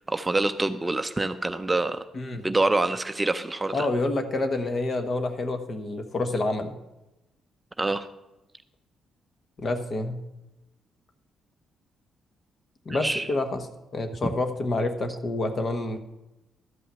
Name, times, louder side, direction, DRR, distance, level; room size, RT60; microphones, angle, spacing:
voice 1, 0.0-2.0 2.4-3.9 7.8-8.1 12.9-13.3, right 2 dB, 15° right, 9 dB, 0.5 m, -26 dB
voice 2, 2.1-2.5 3.7-6.7 9.6-10.2 12.8-13.7 13.9-16.0, left 2 dB, 45° left, 7 dB, 1.3 m, -28 dB
13.0 x 5.6 x 7.6 m, 0.97 s
cardioid pair, 90°, 0 cm